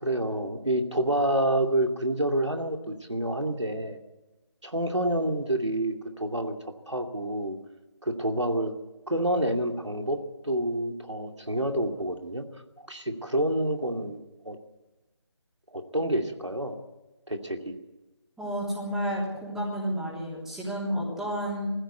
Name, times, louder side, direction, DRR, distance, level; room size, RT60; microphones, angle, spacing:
voice 1, 0.0-4.0 4.6-6.5 6.9-7.6 8.0-8.7 9.1-12.4 12.8-14.6 15.7-16.8 17.3-17.8, right 1 dB, 90° right, 4 dB, 2.6 m, -28 dB
voice 2, 18.4-21.7, equal, 5° right, -6 dB, 3.6 m, -31 dB
20.5 x 15.5 x 8.2 m, 1.1 s
figure-of-eight pair, 155°, 15 cm